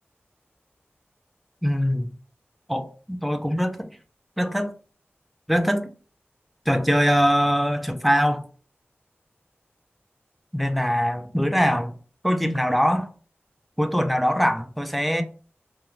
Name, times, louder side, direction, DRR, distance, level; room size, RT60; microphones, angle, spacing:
voice 1, 1.6-2.1 2.7-3.9 4.4-4.7 5.5-5.9 6.7-8.4 10.5-11.9 12.2-13.1 13.8-15.2, equal, ahead, 0.4 m, -22 dB
2.3 x 2.3 x 3.0 m
wide cardioid pair, 55°, 4 cm